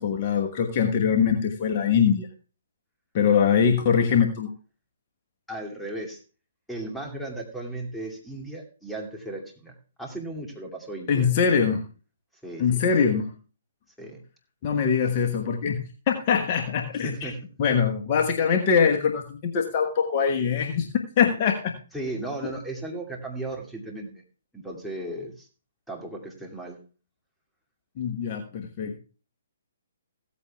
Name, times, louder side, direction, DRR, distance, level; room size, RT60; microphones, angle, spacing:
voice 1, 0.0-2.3 3.1-4.5 11.1-11.8 12.6-13.3 14.6-15.8 16.1-17.3 17.6-21.7 28.0-29.0, left 6 dB, 35° left, 2 dB, 1.2 m, -23 dB
voice 2, 5.5-6.2 6.7-11.3 12.4-12.8 14.0-14.2 17.0-17.4 21.9-24.2 24.5-25.5 25.9-26.8, right 2 dB, ahead, 0 dB, 2.5 m, -36 dB
15.5 x 14.0 x 2.3 m, 0.37 s
figure-of-eight pair, 130°, 0 cm